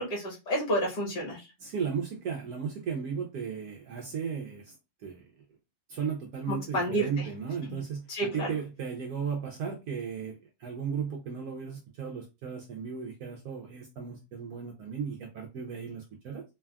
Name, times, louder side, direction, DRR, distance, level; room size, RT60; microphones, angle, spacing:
voice 1, 0.0-1.5 6.5-7.2 7.7-7.8 8.1-8.5, right 1 dB, 55° left, 1.6 m, -30 dB
voice 2, 1.6-4.7 5.0-5.3 5.9-8.1 8.3-16.4, right 6 dB, 70° right, 0.9 m, -35 dB
3.3 x 2.3 x 2.2 m
omnidirectional pair, 2.0 m